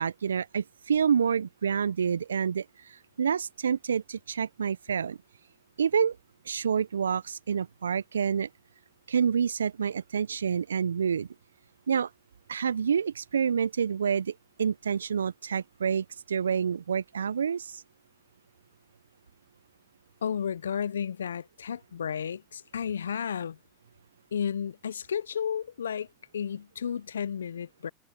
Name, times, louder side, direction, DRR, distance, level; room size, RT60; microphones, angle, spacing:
voice 1, 0.0-2.7 3.2-5.2 5.8-6.2 6.5-8.5 9.1-11.3 11.9-12.1 12.5-14.3 14.6-17.8, right 7 dB, 85° right, 0.3 m, -28 dB
voice 2, 20.2-23.6 24.3-26.1 26.3-27.9, left 8 dB, 85° left, 0.4 m, -32 dB
hypercardioid pair, 80°, 0 cm